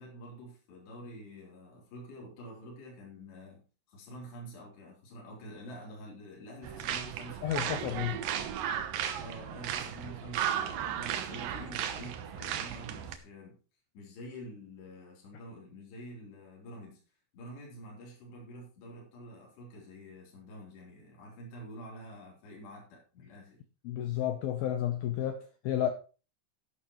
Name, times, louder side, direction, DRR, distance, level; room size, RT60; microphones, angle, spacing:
voice 1, 0.0-8.0 9.2-13.6 13.9-17.0 17.3-23.6, equal, 60° left, 5.7 m, -48 dB
sound 1, 6.6-13.2, right 9 dB, 90° right, 1.9 m, -35 dB
voice 2, 7.4-8.2 23.8-25.9, left 11 dB, 85° left, 2.1 m, -31 dB
11.5 x 11.5 x 3.1 m
omnidirectional pair, 5.5 m